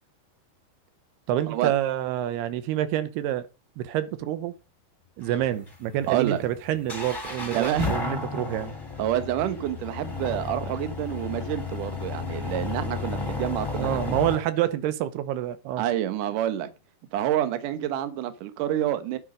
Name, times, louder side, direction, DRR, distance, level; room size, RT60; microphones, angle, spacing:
voice 1, 1.3-3.5 3.8-4.5 5.2-8.7 13.8-15.9, right 12 dB, 85° right, 2.9 m, -27 dB
sound 1, 5.2-14.4, left 4 dB, 5° left, 2.5 m, -33 dB
voice 2, 6.1-6.4 7.4-8.0 9.0-14.2 15.8-16.7 17.1-19.2, right 11 dB, 65° right, 2.4 m, -28 dB
10.0 x 9.0 x 5.0 m
omnidirectional pair, 4.6 m